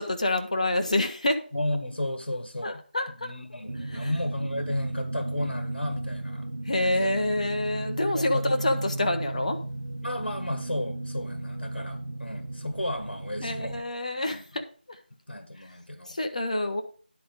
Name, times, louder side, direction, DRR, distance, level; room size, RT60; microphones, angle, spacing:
voice 1, 0.0-1.4 2.6-3.3 3.9-4.1 6.6-9.6 13.4-15.0 15.6-15.7 16.1-16.8, left 1 dB, 40° left, 6 dB, 1.0 m, -27 dB
voice 2, 1.5-2.8 3.2-6.5 6.8-7.1 8.1-8.8 10.0-13.8 14.3-14.4 15.3-16.2, left 1 dB, 85° left, 7 dB, 1.7 m, -33 dB
sound 1, 3.7-13.8, right 2 dB, 70° right, 1.0 m, -34 dB
10.0 x 4.9 x 5.2 m, 0.41 s
figure-of-eight pair, 175°, 6 cm